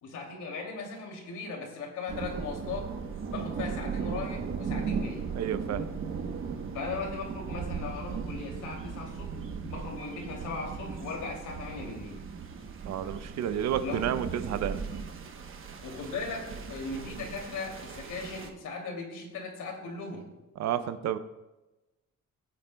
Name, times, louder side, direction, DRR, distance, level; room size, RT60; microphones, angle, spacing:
voice 1, 0.0-2.9 3.3-5.3 6.7-9.4 9.7-12.2 13.8-14.1 15.8-20.3, left 4 dB, 80° left, 1 dB, 2.7 m, -38 dB
sound 1, 2.1-18.5, right 5 dB, 45° right, 1.0 m, -37 dB
voice 2, 5.3-5.8 12.9-14.8 20.6-21.2, right 10 dB, 60° right, 11 dB, 0.7 m, -30 dB
20.5 x 9.2 x 2.3 m, 1.1 s
cardioid pair, 165°, 30 cm